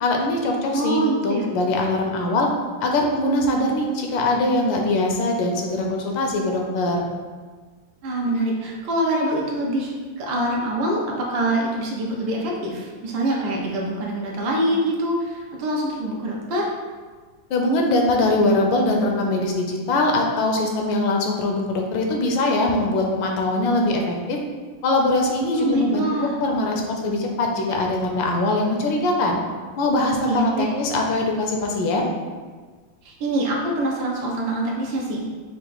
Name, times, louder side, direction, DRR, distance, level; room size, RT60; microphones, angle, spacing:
voice 1, 0.0-2.5 2.8-7.1 17.5-24.4 24.8-26.0 26.4-29.4 29.8-32.1, left 2 dB, 75° left, 1 dB, 1.3 m, -22 dB
voice 2, 0.7-1.5 8.0-16.7 25.5-26.3 30.3-30.7 33.0-35.2, right 1 dB, 70° right, -2 dB, 1.5 m, -24 dB
5.5 x 2.5 x 3.9 m, 1.5 s
omnidirectional pair, 2.2 m